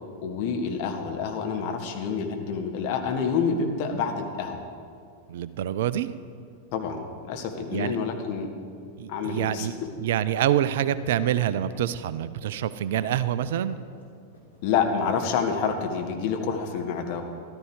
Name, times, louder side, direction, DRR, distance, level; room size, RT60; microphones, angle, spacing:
voice 1, 0.2-4.6 6.7-8.5 9.1-9.7 14.6-17.2, left 6 dB, 45° left, 4 dB, 1.5 m, -28 dB
voice 2, 5.3-6.1 7.7-8.0 9.0-9.7 10.0-13.8, right 11 dB, 55° right, 15 dB, 0.4 m, -26 dB
sound 1, 10.9-11.0 11.3-11.4 11.7-12.1 12.4-13.1 13.7-14.0 14.3-14.6 15.1-15.9, left 2 dB, 80° left, 3.1 m, -47 dB
13.5 x 12.5 x 4.8 m, 2.2 s
figure-of-eight pair, 90°, 0 cm